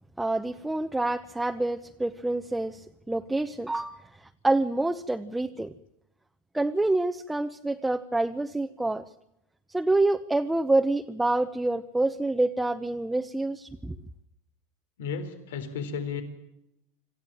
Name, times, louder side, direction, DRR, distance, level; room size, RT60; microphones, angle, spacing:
voice 1, 0.2-5.7 6.5-9.0 9.7-13.9, right 2 dB, 5° right, 6 dB, 1.0 m, -27 dB
voice 2, 15.0-16.2, left 6 dB, 85° left, 9 dB, 4.0 m, -33 dB
26.5 x 14.5 x 8.9 m, 0.83 s
supercardioid pair, 130°, 0 cm